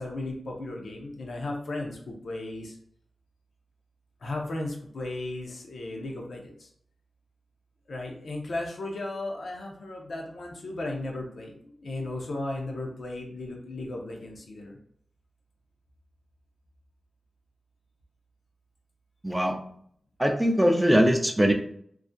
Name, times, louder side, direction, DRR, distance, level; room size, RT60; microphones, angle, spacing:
voice 1, 0.0-2.8 4.2-6.7 7.9-14.8, left 2 dB, 75° left, 0 dB, 0.5 m, -35 dB
voice 2, 20.2-21.5, equal, 10° right, 4 dB, 0.4 m, -21 dB
2.3 x 2.0 x 2.5 m, 0.64 s
cardioid pair, 50°, 0 cm